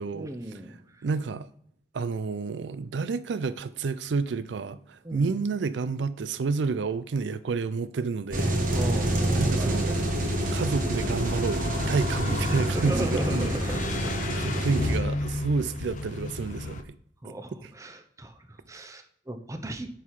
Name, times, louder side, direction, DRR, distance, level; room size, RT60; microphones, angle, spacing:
voice 1, 0.1-1.1 5.0-5.4 8.7-10.4 12.7-14.2 17.2-19.9, right 1 dB, 20° right, 0.8 m, -37 dB
voice 2, 1.0-1.5 1.9-8.6 9.4-10.0 10.5-13.5 14.3-16.9, right 4 dB, 90° right, 0.4 m, -30 dB
sound 1, 8.3-15.0, right 1 dB, 50° right, 1.4 m, -27 dB
sound 2, 9.9-16.8, left 2 dB, 45° left, 0.6 m, -33 dB
9.9 x 3.7 x 4.8 m
head